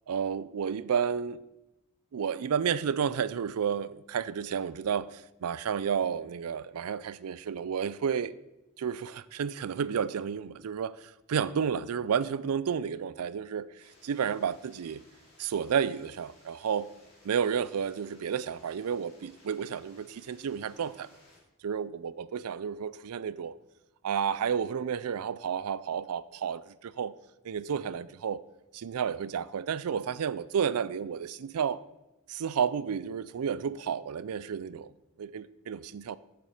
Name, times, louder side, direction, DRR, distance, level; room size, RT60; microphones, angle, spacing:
voice 1, 0.1-1.4 2.1-8.3 8.8-13.7 14.0-15.0 15.4-16.9 17.2-21.1 21.6-23.6 24.0-27.1 27.4-28.4 28.7-31.8 32.3-34.9 35.2-36.2, right 7 dB, 75° right, 0.4 m, -31 dB
sound 1, 13.8-21.4, left 1 dB, 25° left, 3.2 m, -60 dB
7.7 x 6.9 x 4.9 m
head